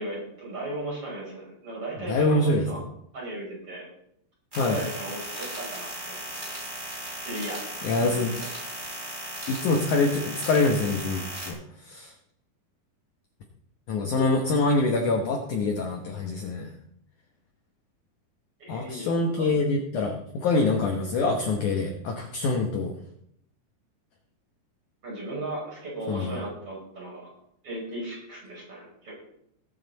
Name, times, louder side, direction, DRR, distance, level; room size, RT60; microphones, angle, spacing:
voice 1, 0.0-2.8 3.1-3.9 4.6-6.5 7.2-8.6 18.6-19.5 25.0-27.3 27.6-29.1, right 1 dB, 35° right, -5 dB, 6.4 m, -36 dB
voice 2, 2.1-2.7 4.6-4.8 7.8-8.4 9.5-11.6 11.9-12.1 13.9-16.7 18.7-22.9 26.1-26.4, left 3 dB, 65° left, 2 dB, 2.1 m, -25 dB
sound 1, 4.5-11.5, right 1 dB, 10° right, 3.7 m, -37 dB
19.5 x 8.0 x 4.0 m, 0.73 s
omnidirectional pair, 4.7 m